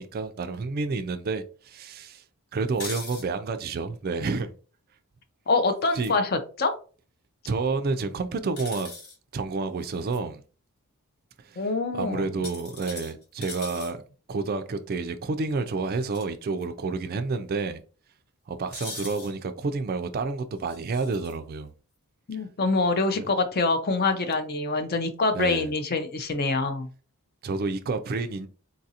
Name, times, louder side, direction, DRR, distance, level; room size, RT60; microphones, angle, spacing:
voice 1, 0.0-2.2 2.5-4.5 6.0-6.1 7.5-8.9 9.3-10.4 11.4-11.6 11.9-14.0 14.3-17.8 18.5-21.7 22.3-22.4 23.2-23.3 25.3-25.7 27.4-28.5, right 4 dB, 45° right, 0.3 m, -29 dB
sound 1, 2.7-3.2 5.8-6.2 8.6-9.2 9.8-10.2 12.4-13.9 16.0-16.2 16.6-16.7 18.7-19.3 20.7-21.4, left 3 dB, 65° left, 1.2 m, -40 dB
voice 2, 5.5-6.7 11.6-12.4 22.3-26.9, left 3 dB, 45° left, 0.5 m, -25 dB
3.9 x 2.4 x 2.7 m
head